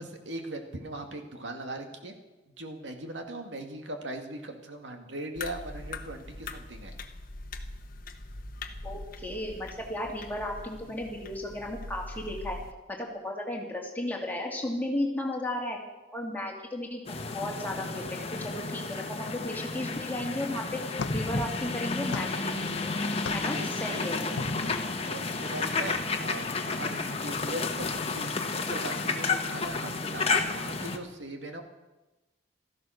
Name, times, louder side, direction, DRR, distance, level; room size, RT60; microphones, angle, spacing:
voice 1, 0.0-2.1 2.6-6.9 23.5-31.6, right 1 dB, 80° right, 5 dB, 2.1 m, -40 dB
sound 1, 5.4-12.7, left 2 dB, 50° left, 1.0 m, -42 dB
voice 2, 8.8-12.6 12.9-15.8 16.1-17.0 17.3-22.9 23.3-24.3, left 1 dB, 10° left, -1 dB, 2.7 m, -34 dB
sound 2, 17.1-31.0, left 3 dB, 35° left, 1.2 m, -31 dB
sound 3, 21.0-25.0, left 5 dB, 90° left, 0.5 m, -42 dB
16.0 x 14.0 x 6.4 m, 1.0 s
head